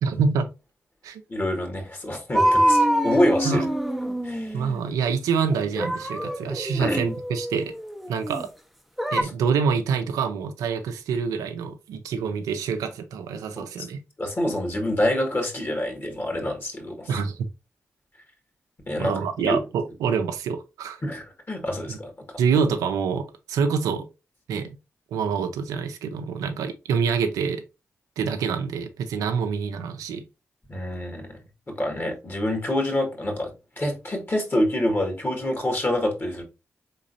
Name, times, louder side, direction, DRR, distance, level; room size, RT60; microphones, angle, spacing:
voice 1, 0.0-0.5 1.0-1.2 3.4-3.6 4.5-7.7 8.1-8.5 9.1-14.0 17.1-17.5 19.0-21.0 22.4-24.1 24.5-24.8 25.1-27.6 28.2-30.2, right 6 dB, 90° right, 0.5 m, -26 dB
voice 2, 1.3-3.6 4.2-4.6 6.8-7.0 9.2-9.3 13.6-13.9 14.2-17.2 18.9-19.6 21.0-22.1 30.7-36.4, left 1 dB, 40° left, 1.8 m, -27 dB
sound 1, 2.3-4.8 5.5-8.5 9.0-9.2, equal, ahead, 0.6 m, -25 dB
3.9 x 3.7 x 2.6 m
supercardioid pair, 45°, 6 cm